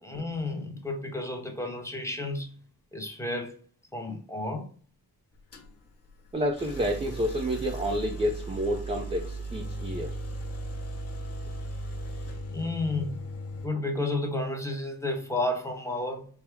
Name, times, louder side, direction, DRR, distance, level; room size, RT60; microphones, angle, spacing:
voice 1, 0.0-2.6 2.9-3.5 3.9-4.7 12.5-13.3 13.6-16.3, left 2 dB, 5° left, 0.8 m, -32 dB
sound 1, 5.5-5.7 6.5-13.7, right 1 dB, 40° left, 0.8 m, -37 dB
voice 2, 6.3-10.2, equal, 15° right, 0.4 m, -29 dB
4.5 x 2.0 x 3.4 m
wide cardioid pair, 130°, 40 cm